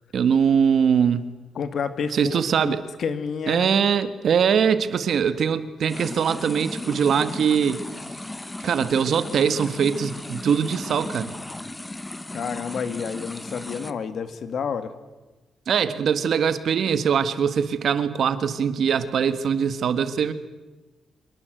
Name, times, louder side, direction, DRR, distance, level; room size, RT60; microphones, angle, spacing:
voice 1, 0.1-1.2 2.1-2.8 3.5-7.8 8.6-11.3 15.7-20.3, right 7 dB, 55° right, 1.5 m, -22 dB
voice 2, 1.6-3.7 12.3-14.9, left 6 dB, 55° left, 2.0 m, -30 dB
sound 1, 5.9-13.9, left 1 dB, 10° left, 1.1 m, -36 dB
25.5 x 23.0 x 7.9 m
wide cardioid pair, 155°, 0 cm